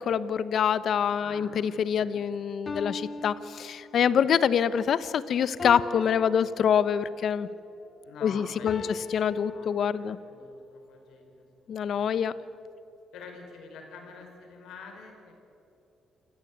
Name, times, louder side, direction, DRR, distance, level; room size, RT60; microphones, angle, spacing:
voice 1, 0.0-7.5 8.2-8.8 9.1-10.2 11.7-12.3, left 8 dB, 60° left, 16 dB, 0.9 m, -25 dB
voice 2, 1.2-2.2 4.0-4.2 5.9-6.1 6.4-6.7 8.0-9.0 9.4-12.1 13.1-15.3, left 4 dB, 80° left, 3 dB, 5.0 m, -48 dB
sound 1, 2.7-4.3 5.6-7.2 8.7-10.3, left 3 dB, 35° left, 2.0 m, -40 dB
28.0 x 16.5 x 8.6 m, 2.8 s
cardioid pair, 90°, 0 cm